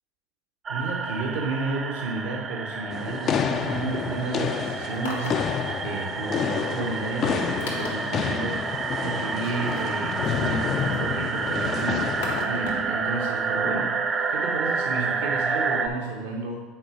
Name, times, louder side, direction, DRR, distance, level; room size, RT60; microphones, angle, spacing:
sound 1, 0.7-15.9, right 4 dB, 30° right, 0.6 m, -29 dB
voice 1, 0.7-16.6, right 3 dB, 75° right, 0 dB, 1.0 m, -32 dB
sound 2, 2.9-12.4, left 8 dB, 45° left, 0.4 m, -29 dB
sound 3, 4.9-5.5 5.9-6.0 6.6-6.7 7.2-7.3 7.6-8.2 9.4-11.1 11.5-12.9 13.2-13.3, left 2 dB, 90° left, 1.6 m, -36 dB
7.9 x 4.1 x 4.7 m, 1.4 s
hypercardioid pair, 85°, 0 cm